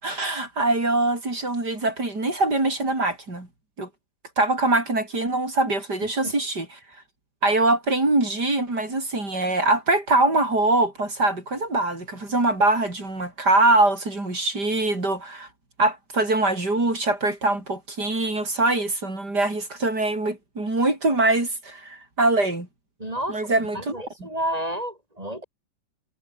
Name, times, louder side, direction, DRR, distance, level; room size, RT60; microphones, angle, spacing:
voice 1, 0.0-3.5 3.8-3.9 4.4-6.8 7.4-15.5 15.8-22.7 23.3-24.3, right 2 dB, 65° right, 7.6 m, -23 dB
voice 2, 23.0-23.4 23.7-25.4, right 1 dB, 20° right, 4.8 m, -30 dB
omnidirectional pair, 1.9 m